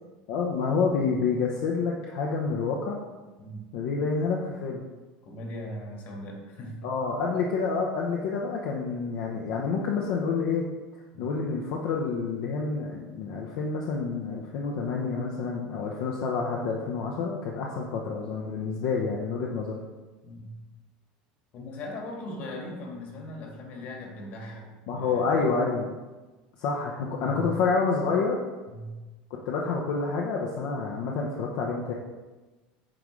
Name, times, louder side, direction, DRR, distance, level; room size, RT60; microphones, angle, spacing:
voice 1, 0.3-3.0 3.7-4.8 6.8-10.6 11.2-19.8 24.9-25.9 26.6-28.4 29.5-31.9, left 4 dB, 65° left, -2 dB, 0.8 m, -28 dB
voice 2, 5.2-6.9 11.1-11.3 20.2-20.6 21.5-25.3 27.2-27.5 28.7-29.0, left 1 dB, 50° left, 0 dB, 1.7 m, -39 dB
8.7 x 3.7 x 3.2 m, 1.2 s
supercardioid pair, 125°, 4 cm